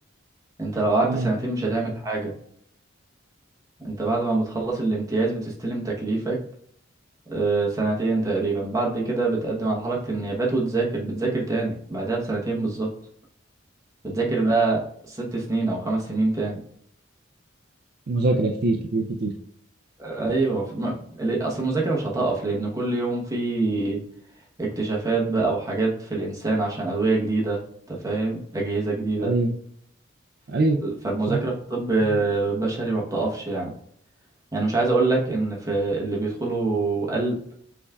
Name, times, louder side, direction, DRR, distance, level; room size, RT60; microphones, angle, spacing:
voice 1, 0.6-2.3 3.8-6.4 7.3-12.9 14.0-16.6 20.0-24.0 24.6-27.6 27.9-29.3 30.8-33.7 34.5-37.4, right 3 dB, 15° right, -3 dB, 1.0 m, -25 dB
voice 2, 18.1-19.3 29.2-29.5 30.5-30.8 31.3-31.4, right 2 dB, 50° right, 1 dB, 0.4 m, -23 dB
6.2 x 3.5 x 2.3 m, 0.68 s
head